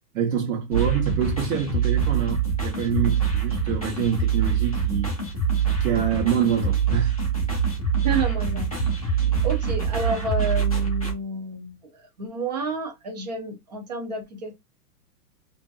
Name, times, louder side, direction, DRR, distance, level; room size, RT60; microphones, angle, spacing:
voice 1, 0.1-5.1 5.8-7.2 9.2-9.4, right 8 dB, 60° right, 1.0 m, -26 dB
sound 1, 0.7-11.1, right 6 dB, 25° left, 0.4 m, -24 dB
voice 2, 8.0-8.7 9.0-14.5, right 2 dB, 25° right, 0.5 m, -30 dB
2.5 x 2.4 x 2.3 m
hypercardioid pair, 170°, 49 cm